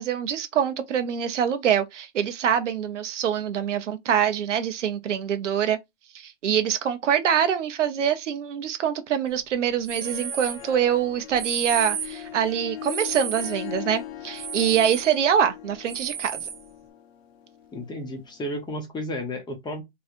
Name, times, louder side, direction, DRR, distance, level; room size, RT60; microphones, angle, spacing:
voice 1, 0.0-5.8 6.1-16.5, right 8 dB, 85° right, 0.7 m, -25 dB
Harp, 9.8-18.4, left 11 dB, 60° left, 0.8 m, -40 dB
sound 1, 9.8-10.6 11.3-12.2 12.8-13.6 14.4-15.1 15.9-16.6, right 8 dB, 20° right, 0.4 m, -32 dB
voice 2, 17.7-19.8, left 1 dB, 10° left, 0.8 m, -32 dB
3.1 x 2.7 x 2.4 m
hypercardioid pair, 125°, 35 cm